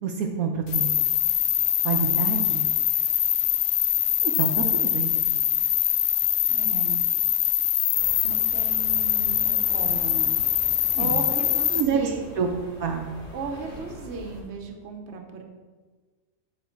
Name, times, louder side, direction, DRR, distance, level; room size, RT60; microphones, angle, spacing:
voice 1, 0.0-1.0 1.8-2.7 4.2-5.1 10.9-11.2 11.7-12.5 12.8-13.1, right 6 dB, 70° right, 2 dB, 1.1 m, -27 dB
sound 1, 0.7-11.8, left 11 dB, 70° left, 1.0 m, -23 dB
voice 2, 6.5-7.0 8.2-10.4 11.0-12.3 13.3-15.4, right 4 dB, 50° right, 3 dB, 1.1 m, -35 dB
sound 2, 7.9-14.4, right 1 dB, 35° left, 2.7 m, -43 dB
8.6 x 3.7 x 5.8 m, 1.4 s
omnidirectional pair, 1.6 m